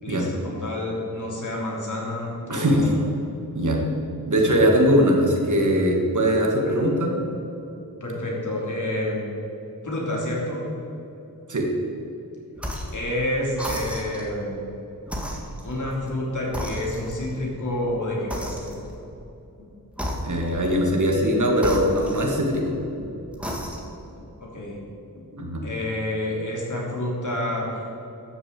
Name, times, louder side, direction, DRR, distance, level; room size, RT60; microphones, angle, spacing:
voice 1, 0.0-2.8 6.6-6.8 8.0-9.2 9.8-10.7 12.9-14.6 15.6-18.8 24.4-24.8 25.6-27.8, left 1 dB, 55° left, -3 dB, 3.3 m, -29 dB
voice 2, 2.5-2.9 3.5-3.8 4.3-7.2 11.5-11.7 20.2-22.8 25.3-25.6, equal, 55° right, 0 dB, 2.0 m, -21 dB
sound 1, 12.6-13.0 13.5-14.3 15.0-16.2 16.5-17.3 18.3-19.0 19.9-20.7 21.6-22.7 23.3-24.0, equal, 5° right, 1.8 m, -33 dB
12.5 x 6.8 x 7.6 m, 3.0 s
wide cardioid pair, 110°, 36 cm